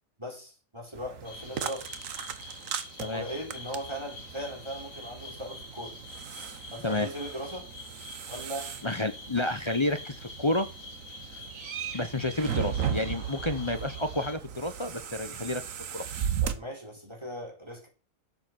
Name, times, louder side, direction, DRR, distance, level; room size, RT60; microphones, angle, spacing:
voice 1, 0.2-1.9 3.0-6.0 6.7-7.7 8.3-8.7 16.4-17.9, equal, 20° right, 4.5 m, -39 dB
sound 1, 1.0-16.5, right 9 dB, 75° right, 1.3 m, -37 dB
sound 2, 1.2-14.3, left 2 dB, 80° left, 3.2 m, -46 dB
voice 2, 8.8-10.7 11.9-15.6 15.9-16.0, left 2 dB, 25° left, 0.8 m, -30 dB
12.0 x 7.4 x 6.1 m
omnidirectional pair, 1.4 m